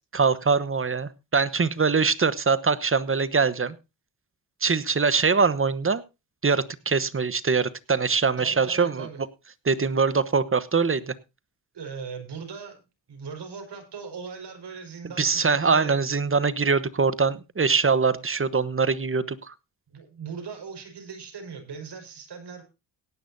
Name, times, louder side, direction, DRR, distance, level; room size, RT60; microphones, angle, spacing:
voice 1, 0.1-3.7 4.6-6.0 6.4-9.1 9.6-11.1 15.2-19.5, right 5 dB, 30° right, 17 dB, 1.1 m, -23 dB
voice 2, 8.4-9.2 11.7-12.8 13.1-16.0 19.9-22.6, right 5 dB, 60° right, 4 dB, 5.2 m, -39 dB
17.5 x 10.5 x 2.7 m, 0.27 s
supercardioid pair, 60°, 45 cm